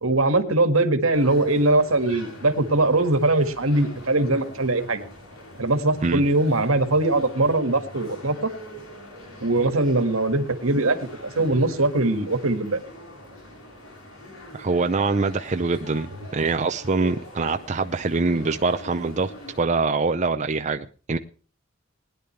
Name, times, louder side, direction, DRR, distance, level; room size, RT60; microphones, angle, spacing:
voice 1, 0.0-5.1 5.6-8.5 9.4-12.8, right 2 dB, 85° right, 8 dB, 1.9 m, -21 dB
sound 1, 1.1-19.6, equal, 85° left, 4.6 m, -43 dB
voice 2, 14.6-19.3 19.6-21.2, right 3 dB, 35° right, 7 dB, 0.6 m, -24 dB
20.5 x 10.5 x 3.3 m, 0.38 s
head